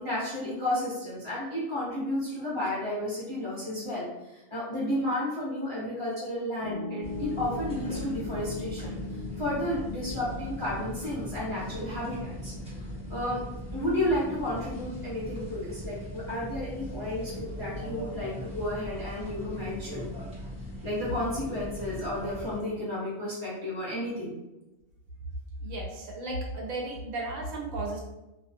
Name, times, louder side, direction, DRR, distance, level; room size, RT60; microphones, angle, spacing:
voice 1, 0.0-4.1 4.3-9.0 9.4-12.5 13.1-13.4 13.7-20.1 20.8-24.3, left 1 dB, 30° left, -9 dB, 0.6 m, -32 dB
Piano, 6.6-18.8, left 3 dB, 70° left, 0.9 m, -42 dB
sound 1, 7.0-22.6, equal, 5° right, 0.8 m, -39 dB
voice 2, 25.6-28.0, right 2 dB, 90° right, -1 dB, 1.1 m, -34 dB
2.6 x 2.1 x 2.8 m, 0.98 s
omnidirectional pair, 1.3 m